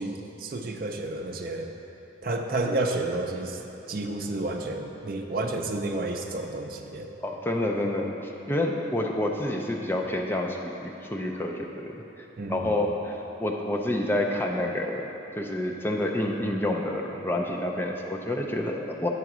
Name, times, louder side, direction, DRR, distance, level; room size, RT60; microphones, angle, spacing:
voice 1, 0.0-1.7 2.2-3.6 3.9-7.1 12.4-12.8, right 2 dB, 50° right, 2 dB, 0.5 m, -30 dB
voice 2, 7.2-12.2 12.5-15.1 15.4-19.1, left 1 dB, 10° left, 0 dB, 0.4 m, -28 dB
8.1 x 3.8 x 6.0 m, 3.0 s
head